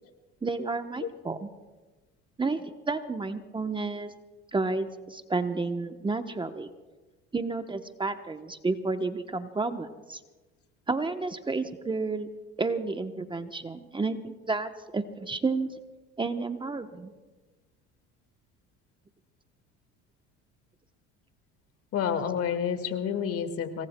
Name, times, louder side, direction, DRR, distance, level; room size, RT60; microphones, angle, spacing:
voice 1, 0.4-1.5 2.4-4.1 4.5-6.7 7.3-10.2 10.9-12.3 12.6-15.7 16.2-17.1, right 3 dB, 15° right, 8 dB, 0.9 m, -31 dB
voice 2, 21.9-23.9, left 7 dB, 50° left, 8 dB, 1.8 m, -29 dB
26.5 x 19.5 x 2.2 m, 1.2 s
supercardioid pair, 95°, 29 cm